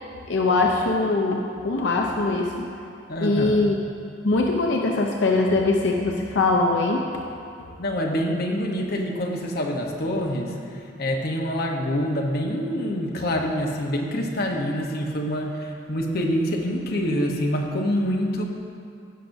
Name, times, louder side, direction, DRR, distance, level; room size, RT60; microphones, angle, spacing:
voice 1, 0.3-2.5 3.2-3.8 4.2-7.1, left 3 dB, 85° left, 1 dB, 0.6 m, -22 dB
voice 2, 3.1-3.6 7.8-18.4, equal, 60° left, 1 dB, 0.9 m, -26 dB
16.5 x 5.8 x 2.7 m, 2.5 s
head